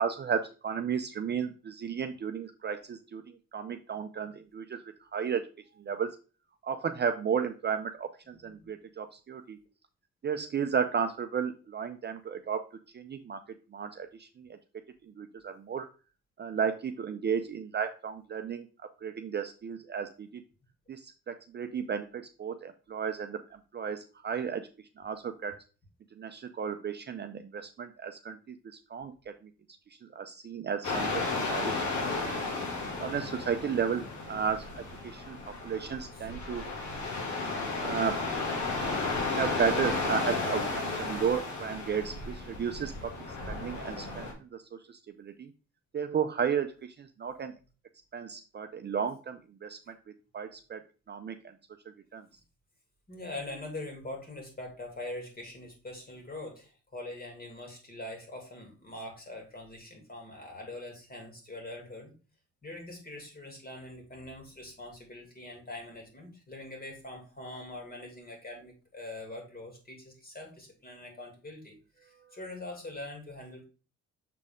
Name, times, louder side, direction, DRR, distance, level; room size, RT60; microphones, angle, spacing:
voice 1, 0.0-5.4 5.8-6.1 6.6-9.6 10.2-12.7 12.9-13.4 13.7-14.6 15.0-15.9 16.4-18.7 19.0-20.4 20.9-24.7 25.0-25.6 26.2-29.3 30.0-31.7 32.1-32.4 33.0-36.7 37.8-38.2 39.3-43.1 43.5-45.5 45.9-47.5 48.1-49.9 50.3-50.8 51.1-51.5 52.1-52.2, right 7 dB, 35° right, 7 dB, 0.5 m, -34 dB
voice 2, 8.3-8.7 36.1-36.3 53.1-62.1 62.6-73.7, left 2 dB, 30° left, 2 dB, 2.5 m, -43 dB
sound 1, 30.8-44.3, left 3 dB, 70° left, 2.4 m, -33 dB
6.5 x 4.1 x 3.6 m, 0.35 s
cardioid pair, 90°, 30 cm